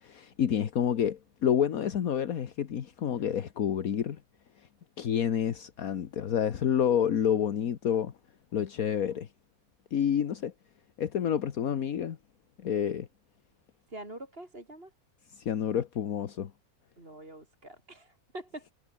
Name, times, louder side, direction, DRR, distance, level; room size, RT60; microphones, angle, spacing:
voice 1, 0.0-4.2 5.0-8.1 8.5-9.3 9.9-10.5 11.0-12.2 12.6-13.1 15.3-16.5, left 9 dB, 70° left, 1.6 m, -29 dB
voice 2, 13.9-14.9 17.0-18.7, right 1 dB, 40° right, 5.0 m, -45 dB
omnidirectional pair, 1.6 m